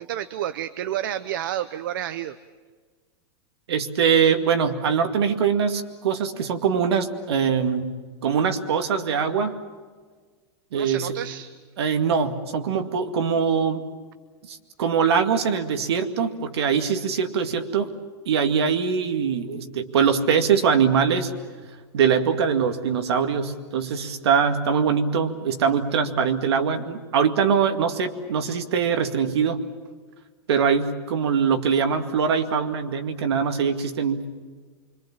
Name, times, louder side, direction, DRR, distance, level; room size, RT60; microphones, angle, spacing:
voice 1, 0.0-2.4 10.7-11.5, right 11 dB, 50° right, 12 dB, 0.7 m, -30 dB
voice 2, 3.7-7.9 8.2-9.6 10.7-11.1 11.8-13.9 14.5-17.9 18.3-21.3 21.9-29.6 30.5-34.3, right 6 dB, 75° right, 6 dB, 2.2 m, -22 dB
26.0 x 24.0 x 7.4 m, 1.5 s
supercardioid pair, 175°, 14 cm